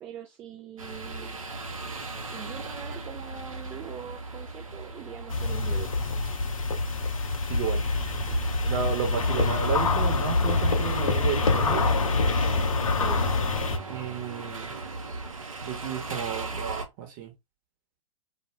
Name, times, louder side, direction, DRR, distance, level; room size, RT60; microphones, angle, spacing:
voice 1, 0.0-1.4 1.9-2.0 2.3-5.9 13.0-13.2, right 8 dB, 15° right, 0.3 m, -42 dB
sound 1, 0.8-16.9, right 3 dB, 75° right, 0.7 m, -38 dB
sound 2, 5.3-13.8, left 3 dB, 75° left, 0.6 m, -26 dB
voice 2, 7.5-7.8 8.6-11.8 13.9-14.8 15.6-17.3, right 8 dB, 35° right, 0.9 m, -32 dB
2.3 x 2.3 x 3.1 m
figure-of-eight pair, 115°, 18 cm